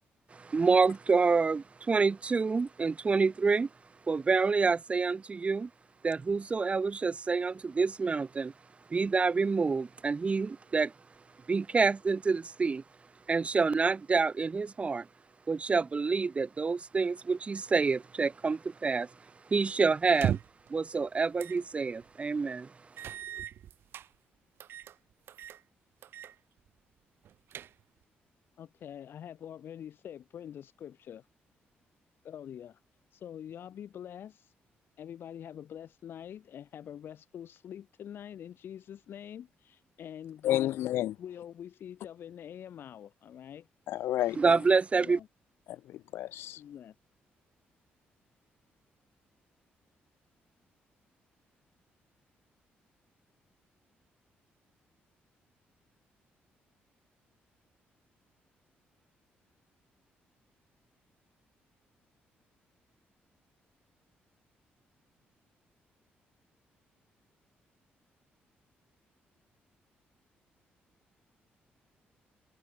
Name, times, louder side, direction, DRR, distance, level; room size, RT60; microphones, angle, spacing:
voice 1, 0.3-3.7 4.1-5.7 6.0-8.5 8.9-10.9 11.5-12.8 13.3-15.1 15.5-19.1 19.5-20.4 20.7-22.7 44.4-45.2, right 4 dB, 30° right, 1.4 m, -27 dB
sound 1, 20.1-20.7 21.4-21.6 22.0-22.1 23.0-24.1 24.6-25.0 25.3-25.6 26.0-26.3 26.7-26.8 27.2-28.0, right 10 dB, 70° right, 6.2 m, -36 dB
voice 2, 28.6-31.3 32.2-32.8 33.1-34.5 35.0-40.7 41.2-43.7 44.3-44.7 44.9-45.3 46.6-46.9, left 9 dB, 65° left, 5.3 m, -45 dB
voice 3, 40.4-41.1 43.9-44.4 45.7-46.6, left 13 dB, 85° left, 1.0 m, -30 dB
cardioid pair, 90°, 4 cm